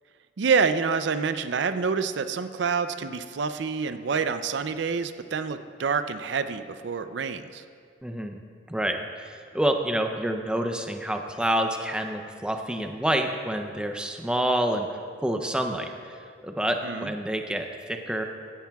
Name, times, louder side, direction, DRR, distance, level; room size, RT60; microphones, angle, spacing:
voice 1, 0.4-7.6 16.8-17.1, right 5 dB, 65° right, 10 dB, 0.4 m, -27 dB
voice 2, 8.0-8.4 8.7-18.2, right 1 dB, 5° right, 4 dB, 0.5 m, -28 dB
15.5 x 13.0 x 2.3 m, 2.2 s
head